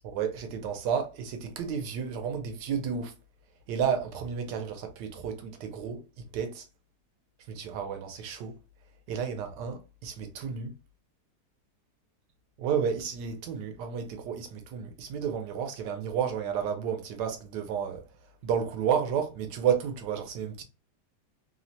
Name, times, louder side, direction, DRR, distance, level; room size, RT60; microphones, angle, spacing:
voice 1, 0.1-3.1 3.7-6.0 6.3-6.6 7.5-8.6 9.1-10.7 12.6-18.0 18.4-20.6, right 7 dB, 85° right, 1.2 m, -31 dB
3.1 x 2.1 x 2.6 m
omnidirectional pair, 1.8 m